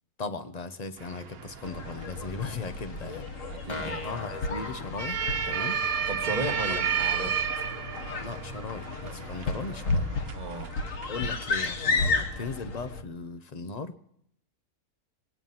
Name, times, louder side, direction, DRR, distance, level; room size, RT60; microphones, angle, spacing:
voice 1, 0.2-5.8 8.2-10.3 11.1-14.0, left 4 dB, 35° left, 11 dB, 0.7 m, -38 dB
sound 1, 1.0-12.2, right 7 dB, 75° right, 1.5 m, -34 dB
sound 2, 1.6-13.0, left 3 dB, 60° left, 1.6 m, -33 dB
voice 2, 3.5-4.0 6.1-7.3 10.3-10.7, right 2 dB, 30° right, 3 dB, 1.4 m, -35 dB
sound 3, 3.7-5.6, left 3 dB, 80° left, 2.4 m, -40 dB
22.5 x 9.2 x 5.5 m, 0.72 s
omnidirectional pair, 1.5 m